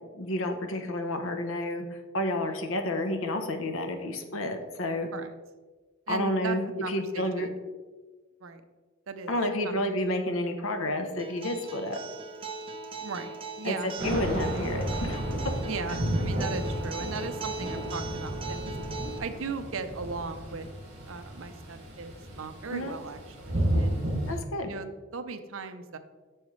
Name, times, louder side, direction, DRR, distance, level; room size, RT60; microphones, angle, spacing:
voice 1, 0.1-5.1 6.1-7.5 9.3-12.0 13.6-15.2 15.9-16.0 22.7-23.0 24.3-24.7, left 1 dB, 75° left, 6 dB, 0.9 m, -30 dB
voice 2, 6.1-7.6 8.4-8.6 9.1-9.3 9.6-9.8 13.0-14.3 15.6-18.7 19.2-20.7 21.1-24.0 24.7-26.0, right 4 dB, 70° right, 9 dB, 0.6 m, -38 dB
Acoustic guitar, 11.2-19.2, right 3 dB, 25° right, 0.8 m, -39 dB
Thunder / Rain, 14.0-24.3, right 1 dB, 55° right, 2.5 m, -32 dB
9.0 x 6.3 x 3.2 m, 1.3 s
head